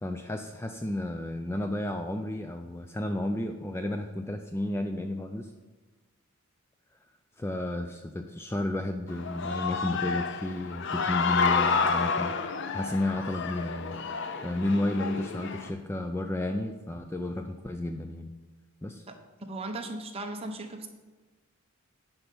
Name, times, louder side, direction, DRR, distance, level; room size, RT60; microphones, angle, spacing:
voice 1, 0.0-5.5 7.4-14.0 14.2-18.3 18.8-19.1, left 1 dB, 10° left, 6 dB, 0.3 m, -32 dB
Human voice / Cheering, 9.1-15.7, left 5 dB, 55° left, 0.6 m, -30 dB
voice 2, 19.5-20.9, right 2 dB, 25° right, 4 dB, 0.9 m, -36 dB
10.0 x 5.5 x 5.4 m, 1.3 s
head